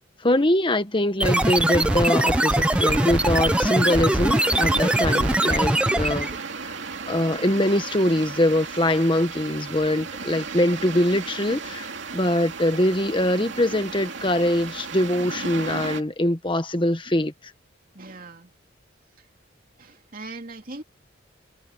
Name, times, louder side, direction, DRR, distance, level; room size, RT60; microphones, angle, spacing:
voice 1, 0.2-6.3 7.1-17.3, left 1 dB, 25° left, 1.4 m, -23 dB
sound 1, 1.2-6.4, right 1 dB, 5° right, 0.6 m, -21 dB
sound 2, 1.2-16.0, right 4 dB, 65° right, 2.6 m, -34 dB
voice 2, 17.9-18.5 19.2-19.3 19.8-20.8, right 2 dB, 45° right, 2.8 m, -41 dB
head